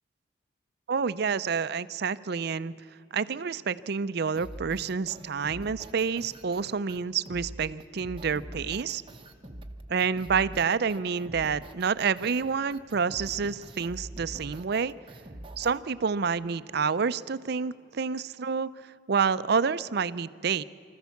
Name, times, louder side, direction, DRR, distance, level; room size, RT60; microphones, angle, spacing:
voice 1, 0.9-2.7 3.1-9.0 9.9-14.9 15.6-18.7 19.1-20.6, right 6 dB, 60° right, 15 dB, 0.5 m, -28 dB
sound 1, 4.3-15.8, right 1 dB, 30° right, 1.0 m, -44 dB
25.5 x 14.5 x 7.1 m, 2.5 s
head